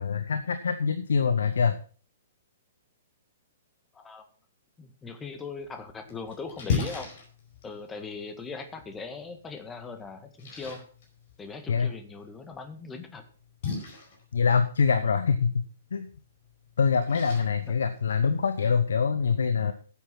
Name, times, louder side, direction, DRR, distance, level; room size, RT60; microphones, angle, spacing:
voice 1, 0.0-1.7 11.7-11.9 14.3-15.6 15.9-16.1 16.8-19.7, left 6 dB, 65° left, 10 dB, 0.9 m, -24 dB
voice 2, 3.9-4.2 4.8-7.1 7.6-10.8 11.4-13.2 15.0-15.2, left 4 dB, 15° left, 7 dB, 1.8 m, -40 dB
Splash splatter, 5.6-18.6, left 5 dB, 50° left, 4.9 m, -39 dB
10.5 x 8.4 x 5.8 m, 0.40 s
figure-of-eight pair, 115°, 0 cm